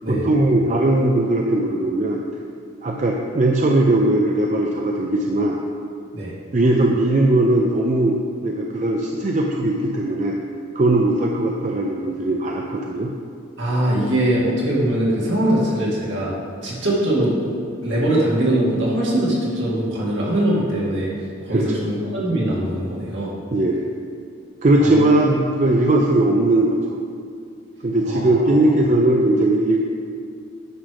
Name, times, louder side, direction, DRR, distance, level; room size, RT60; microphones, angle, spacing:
voice 1, 0.1-2.2 2.8-5.6 6.5-10.4 10.7-13.1 21.5-21.7 23.5-23.9 24.6-27.0 27.8-29.8, right 1 dB, 35° right, 0 dB, 0.4 m, -19 dB
voice 2, 13.6-16.3 16.6-17.5 17.8-21.1 21.4-23.3 24.8-25.0 28.0-28.6, right 1 dB, 65° right, -6 dB, 2.0 m, -21 dB
9.7 x 3.2 x 6.2 m, 2.3 s
head